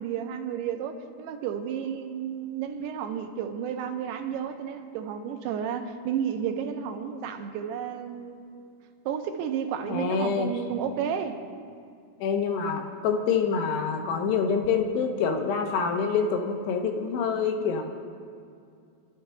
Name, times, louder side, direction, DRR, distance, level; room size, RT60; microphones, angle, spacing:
voice 1, 0.0-8.7 9.1-11.4, right 8 dB, 80° right, 6 dB, 2.8 m, -32 dB
voice 2, 9.9-10.5 12.2-17.8, left 6 dB, 85° left, 4 dB, 3.2 m, -26 dB
24.5 x 12.0 x 3.4 m, 2.4 s
omnidirectional pair, 4.8 m